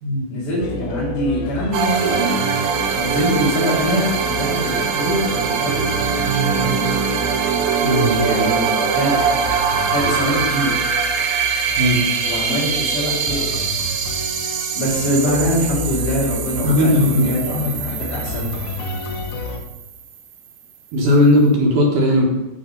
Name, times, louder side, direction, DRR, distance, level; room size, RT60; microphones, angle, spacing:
voice 1, 0.3-2.4 2.9-5.9 6.3-6.8 8.2-10.9 12.2-13.8 14.7-18.6, equal, 50° left, -6 dB, 4.3 m, -24 dB
sound 1, 0.6-19.6, left 4 dB, 80° left, 3.0 m, -32 dB
sound 2, 1.7-20.2, right 6 dB, 80° right, 2.1 m, -22 dB
voice 2, 7.8-8.5 11.8-12.0 16.6-17.7 20.9-22.3, left 1 dB, 65° right, -2 dB, 2.1 m, -17 dB
11.5 x 4.1 x 5.3 m, 1.0 s
omnidirectional pair, 5.1 m